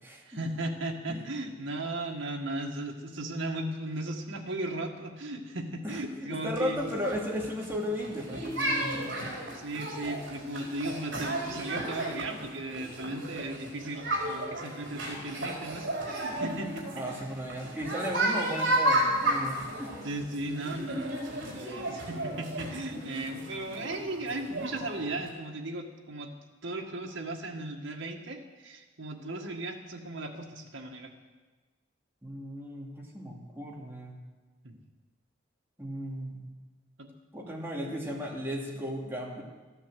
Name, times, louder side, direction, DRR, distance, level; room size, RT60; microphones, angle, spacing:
voice 1, 0.2-6.9 9.5-17.0 20.0-26.3 26.6-31.1 34.6-34.7 37.0-37.1 37.5-37.6, right 2 dB, 90° right, 1 dB, 1.6 m, -36 dB
voice 2, 5.8-9.2 16.9-20.1 20.8-20.9 32.2-34.2 35.8-36.4 37.3-39.4, equal, 10° right, -2 dB, 2.5 m, -35 dB
sound 1, 6.5-25.3, right 1 dB, 65° right, 4.2 m, -33 dB
13.5 x 10.0 x 7.6 m, 1.3 s
head